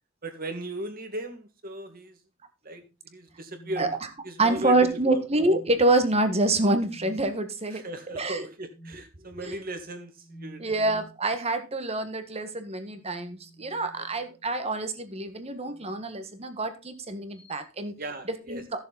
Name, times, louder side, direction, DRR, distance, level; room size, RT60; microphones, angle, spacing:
voice 1, 0.2-2.2 2.6-3.9 4.2-5.2 7.7-10.9 14.0-14.1 18.0-18.8, right 1 dB, 45° right, 6 dB, 2.1 m, -37 dB
sound 1, 3.3-4.6 5.2-6.0 6.8-7.3 8.7-9.1 10.2-11.2 12.7-14.6 15.6-16.1 17.3-17.6, right 1 dB, 35° left, 3.0 m, -50 dB
voice 2, 4.4-7.8 8.2-8.4 10.6-17.9 18.5-18.8, right 2 dB, 30° right, 8 dB, 1.6 m, -26 dB
14.5 x 6.9 x 4.1 m, 0.29 s
head